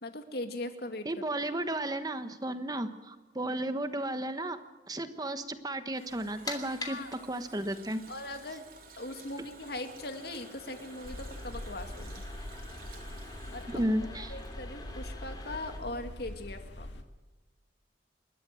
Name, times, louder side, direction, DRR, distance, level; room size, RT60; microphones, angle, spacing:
voice 1, 0.0-1.1 3.4-3.6 6.8-7.1 8.1-8.7 9.0-12.2 13.5-13.8 14.1-16.9, left 2 dB, 60° left, 6 dB, 2.2 m, -40 dB
voice 2, 1.0-8.0 13.7-14.3, right 1 dB, 20° right, 10 dB, 1.2 m, -34 dB
Water tap faucet, 5.5-15.1 15.4-15.5, right 5 dB, 50° right, 3.7 m, -54 dB
sound 1, 6.1-15.8, left 3 dB, 20° left, 3.0 m, -47 dB
sound 2, 11.0-17.0, left 1 dB, 75° left, 1.9 m, -43 dB
29.0 x 13.0 x 7.7 m, 1.2 s
head